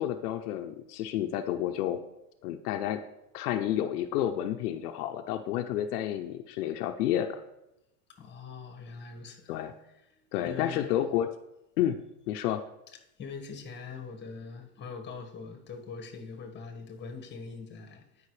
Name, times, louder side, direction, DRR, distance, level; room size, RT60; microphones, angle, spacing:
voice 1, 0.0-2.0 2.4-3.0 3.3-7.4 9.5-9.7 10.3-11.3 11.8-12.6, left 11 dB, 80° left, 0.8 m, -30 dB
voice 2, 8.1-9.6 10.2-10.8 13.2-18.3, left 5 dB, 25° left, 1.5 m, -43 dB
16.0 x 5.5 x 3.3 m
supercardioid pair, 125°, 45 cm